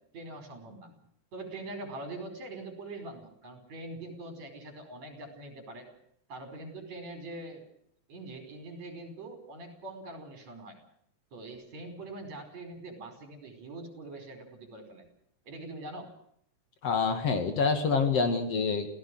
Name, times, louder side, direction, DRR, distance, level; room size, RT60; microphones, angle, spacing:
voice 1, 0.1-0.9 1.3-5.9 6.3-7.6 8.1-10.8 11.3-15.0 15.4-16.1, right 2 dB, 65° right, 6 dB, 6.4 m, -43 dB
voice 2, 16.8-18.9, left 5 dB, 55° left, 7 dB, 3.4 m, -26 dB
28.0 x 17.0 x 6.3 m, 0.71 s
omnidirectional pair, 3.3 m